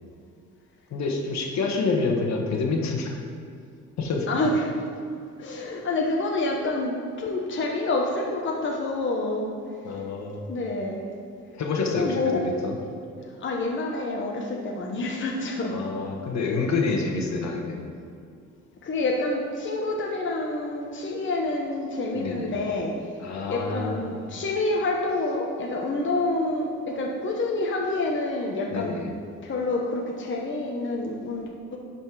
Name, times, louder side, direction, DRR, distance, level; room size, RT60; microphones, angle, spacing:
voice 1, 0.9-3.1 4.0-4.3 9.8-10.5 11.6-12.8 15.7-17.9 22.2-22.5 23.2-24.2 28.7-29.1, left 4 dB, 65° left, 1 dB, 1.4 m, -27 dB
voice 2, 4.3-4.7 5.4-9.5 9.9-10.0 10.5-11.0 11.9-12.4 13.4-15.8 18.8-23.2 23.5-29.0 29.4-31.8, left 2 dB, 40° left, -1 dB, 1.0 m, -28 dB
10.5 x 4.3 x 4.8 m, 2.4 s
cardioid pair, 90°, 30 cm